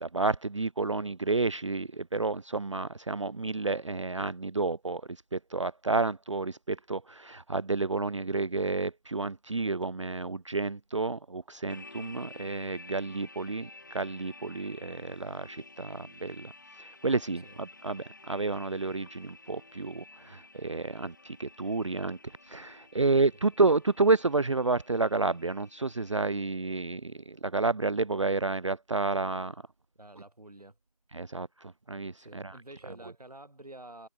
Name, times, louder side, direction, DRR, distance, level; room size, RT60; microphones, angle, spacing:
voice 1, 0.0-22.2 22.5-29.6 31.1-32.6, right 3 dB, 55° right, 0.4 m, -30 dB
sound 1, 11.7-26.2, left 3 dB, 30° left, 1.8 m, -52 dB
voice 2, 30.0-30.8 32.2-34.1, right 1 dB, 80° right, 5.2 m, -49 dB
figure-of-eight pair, 175°, 19 cm